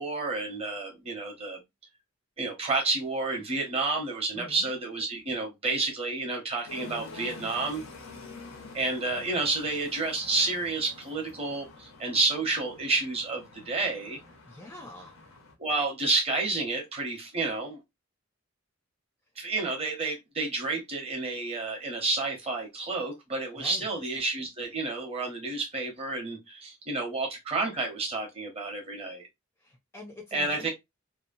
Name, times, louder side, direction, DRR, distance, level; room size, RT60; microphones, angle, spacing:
voice 1, 0.0-1.6 2.4-7.9 8.7-14.2 15.6-17.8 19.4-29.2 30.3-30.7, right 3 dB, 30° right, 0.9 m, -30 dB
voice 2, 4.4-4.7 14.5-15.1 23.6-23.9 29.6-30.7, left 1 dB, 10° left, 0.5 m, -45 dB
sound 1, 6.7-15.5, left 3 dB, 80° left, 0.8 m, -47 dB
2.8 x 2.1 x 2.5 m
head